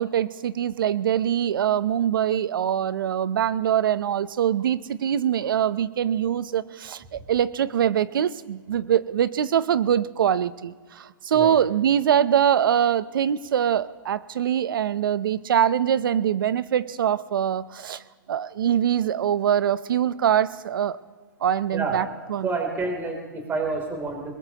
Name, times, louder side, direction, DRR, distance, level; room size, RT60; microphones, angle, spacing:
voice 1, 0.0-18.0 18.3-21.0 21.4-22.5, right 9 dB, 80° right, 16 dB, 0.7 m, -23 dB
voice 2, 22.4-24.3, right 3 dB, 20° right, 2 dB, 3.3 m, -29 dB
21.5 x 21.5 x 3.0 m, 1.5 s
hypercardioid pair, 135°, 11 cm